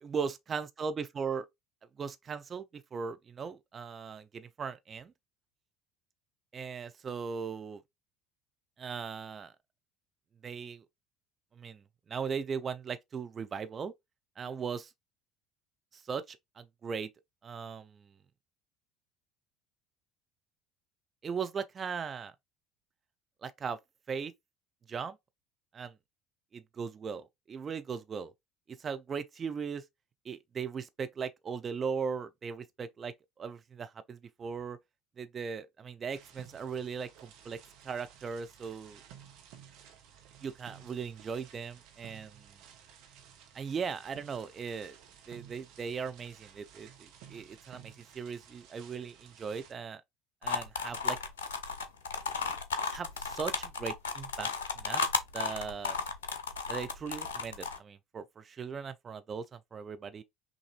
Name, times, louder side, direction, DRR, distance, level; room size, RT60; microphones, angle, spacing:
voice 1, 0.0-1.5 2.0-5.1 6.5-7.8 8.8-9.5 10.4-10.8 11.5-13.9 14.4-14.9 15.9-17.1 17.4-18.1 21.2-22.3 23.4-23.8 24.1-24.3 24.9-25.2 25.7-26.0 26.5-28.3 28.8-29.8 30.2-34.8 35.2-37.6 37.8-39.0 40.4-42.6 43.5-45.0 45.3-50.0 50.4-51.2 52.9-54.5 54.7-55.0 55.3-56.0 56.7-60.2, right 6 dB, 30° right, 0.6 m, -38 dB
sound 1, 36.1-49.7, right 9 dB, 60° right, 1.0 m, -55 dB
sound 2, 50.4-57.8, left 5 dB, 75° left, 0.6 m, -34 dB
5.8 x 2.7 x 2.4 m
figure-of-eight pair, 65°, 0 cm